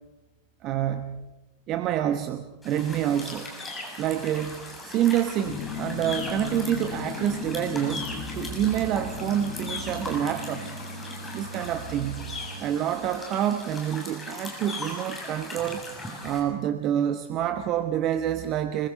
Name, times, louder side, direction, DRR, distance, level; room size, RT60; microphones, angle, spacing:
voice 1, 0.6-1.2 1.7-3.5 4.0-10.7 11.3-12.3 12.6-15.8 16.2-18.9, right 11 dB, 35° right, 9 dB, 1.0 m, -27 dB
sound 1, 2.6-16.4, left 2 dB, 10° left, 6.9 m, -39 dB
sound 2, 5.4-14.0 14.3-14.4, left 9 dB, 40° left, 2.0 m, -39 dB
sound 3, 8.6-12.6, right 5 dB, 85° left, 2.4 m, -42 dB
25.0 x 22.5 x 5.4 m, 1.1 s
figure-of-eight pair, 90°, 0 cm